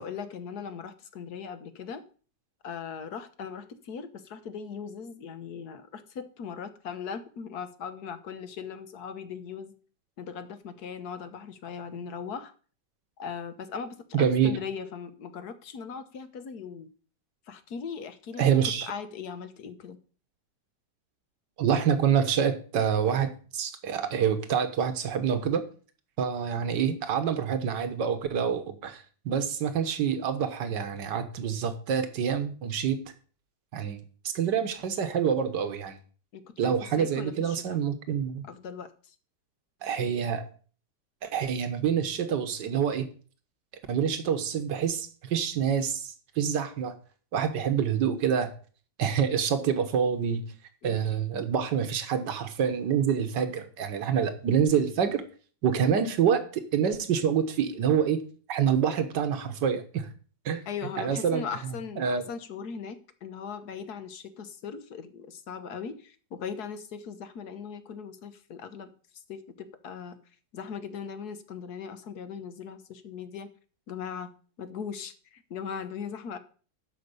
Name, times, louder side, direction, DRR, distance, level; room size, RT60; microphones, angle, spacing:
voice 1, 0.0-2.0 2.6-9.7 10.2-12.5 13.2-16.9 17.5-20.0 36.3-37.8 38.5-39.1 50.8-51.0 60.7-70.2 70.5-73.5 73.9-76.4, left 6 dB, 65° left, 11 dB, 1.6 m, -39 dB
voice 2, 14.1-14.5 18.4-18.9 21.6-25.6 26.2-33.0 33.7-34.0 34.3-36.0 36.6-38.5 39.8-40.4 41.2-43.1 43.9-47.0 47.3-48.5 49.0-50.4 50.8-55.2 55.6-58.2 58.5-60.1 60.5-60.6 61.0-62.2, right 7 dB, 75° right, 8 dB, 1.9 m, -27 dB
12.0 x 5.3 x 6.8 m, 0.41 s
omnidirectional pair, 1.9 m